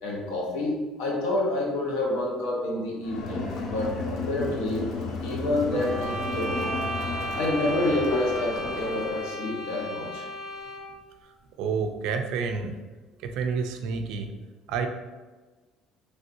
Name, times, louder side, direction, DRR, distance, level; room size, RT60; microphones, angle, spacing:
voice 1, 0.0-4.9 5.2-6.7 7.3-10.2, left 2 dB, 85° left, -2 dB, 0.8 m, -28 dB
Crowd, 3.0-9.3, left 3 dB, 55° left, 0.5 m, -33 dB
sound 1, 5.7-11.0, right 1 dB, 30° left, 1.0 m, -35 dB
voice 2, 11.6-12.8 13.2-14.3 14.7-14.9, right 5 dB, 75° right, 6 dB, 0.3 m, -29 dB
3.2 x 2.7 x 2.6 m, 1.3 s
cardioid pair, 125°, 0 cm